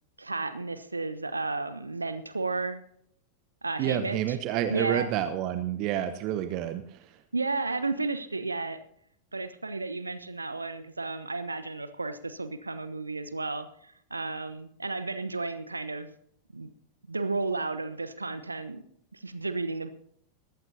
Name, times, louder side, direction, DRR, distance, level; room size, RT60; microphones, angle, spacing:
voice 1, 0.2-2.8 3.6-4.4 4.7-5.1 7.3-8.8 9.3-16.1 16.5-16.7 17.1-18.8 19.1-19.9, right 3 dB, 80° right, 12 dB, 0.9 m, -33 dB
voice 2, 3.8-7.2, right 11 dB, 40° right, 11 dB, 0.9 m, -29 dB
19.0 x 15.0 x 2.8 m, 0.69 s
figure-of-eight pair, 90°, 0 cm